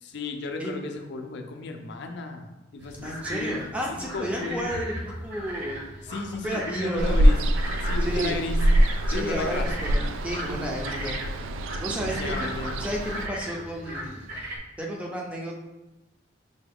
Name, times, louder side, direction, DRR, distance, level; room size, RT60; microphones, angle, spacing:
voice 1, 0.0-2.5 2.7-3.6 3.9-4.7 6.0-7.4 7.8-8.6 9.1-9.7 11.9-12.8, left 3 dB, 60° left, 4 dB, 0.5 m, -34 dB
sound 1, 2.8-14.6, equal, 55° right, 1.0 m, -37 dB
voice 2, 3.0-5.9 6.4-7.2 8.0-8.3 9.1-11.2 11.8-12.5 12.8-14.3 14.8-15.5, equal, 5° right, -2 dB, 0.5 m, -32 dB
Ocean, 7.0-13.3, equal, 80° right, 0.3 m, -24 dB
5.4 x 2.3 x 3.4 m, 1.0 s
head